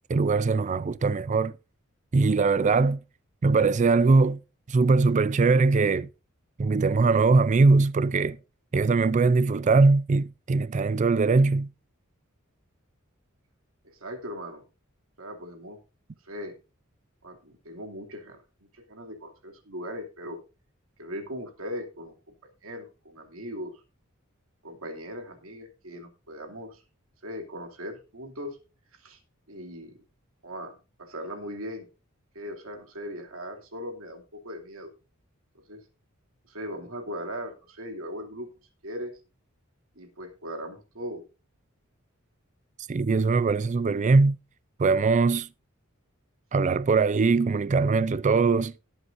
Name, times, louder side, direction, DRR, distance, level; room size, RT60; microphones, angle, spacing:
voice 1, 0.1-1.5 2.1-3.0 3.4-4.4 4.7-6.1 6.6-8.4 8.7-11.7 42.9-44.4 44.8-45.5 46.5-48.7, right 4 dB, 35° right, 0.4 m, -21 dB
voice 2, 13.9-14.6 15.2-15.8 16.2-16.6 17.2-18.4 18.7-20.4 21.0-22.1 22.6-23.8 24.6-26.8 27.2-28.6 29.0-29.2 29.5-30.0 30.4-31.9 32.3-34.9 35.7-35.8 36.5-38.5 38.8-39.1 40.0-41.2, equal, 85° right, 2.7 m, -39 dB
18.0 x 7.9 x 2.6 m
head